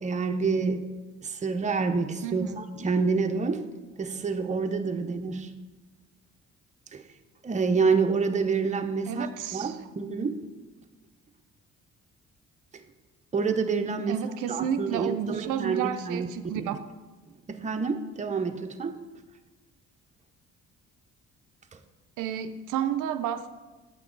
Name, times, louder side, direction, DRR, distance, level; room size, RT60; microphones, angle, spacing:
voice 1, 0.0-0.9 1.2-3.7 4.0-5.5 6.9-7.0 7.4-10.4 13.3-14.2 14.5-16.3 17.5-19.0, right 5 dB, 25° right, 0.6 m, -27 dB
voice 2, 2.2-2.6 9.1-9.9 14.1-16.8 22.2-23.5, right 9 dB, 85° right, 0.5 m, -31 dB
8.6 x 6.0 x 3.8 m
cardioid pair, 90°, 30 cm